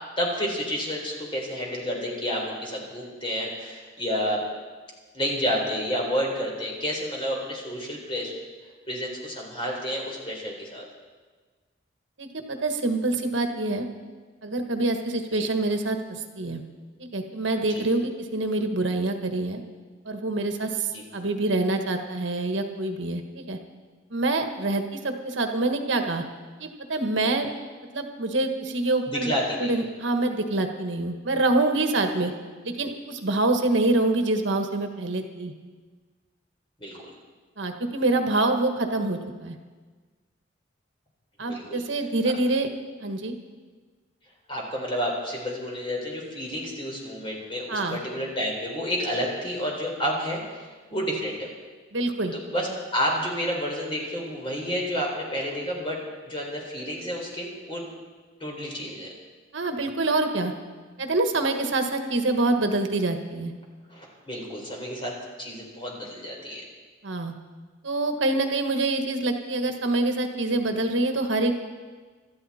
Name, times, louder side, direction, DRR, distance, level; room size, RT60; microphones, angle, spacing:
voice 1, 0.2-4.4 5.1-8.3 8.9-10.8 15.4-15.5 17.7-17.8 20.9-21.0 29.1-29.7 36.8-37.0 41.4-41.8 44.5-51.5 52.3-52.7 52.9-56.0 56.2-57.8 58.4-59.1 63.9-66.6, equal, 25° left, -1 dB, 3.9 m, -30 dB
voice 2, 12.2-13.9 14.4-16.6 17.0-19.6 20.0-23.6 24.1-26.2 26.6-27.5 27.9-29.3 29.6-32.3 32.6-35.5 37.6-39.6 41.4-42.7 43.0-43.3 47.7-48.0 51.9-52.3 59.5-60.5 61.0-63.5 67.0-67.3 67.8-71.6, right 2 dB, 75° right, 5 dB, 1.4 m, -26 dB
26.0 x 13.0 x 4.3 m, 1.4 s
head